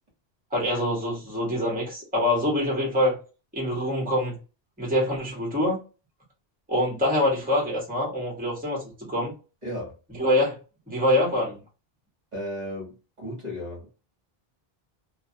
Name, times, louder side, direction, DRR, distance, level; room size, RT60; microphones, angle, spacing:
voice 1, 0.5-3.2 3.5-4.4 4.8-5.8 6.7-9.3 10.2-10.6 10.9-11.6, left 1 dB, 10° right, 1.0 m, -25 dB
voice 2, 9.6-10.0 12.3-13.9, equal, 45° right, 1.1 m, -35 dB
2.3 x 2.2 x 2.6 m
omnidirectional pair, 1.0 m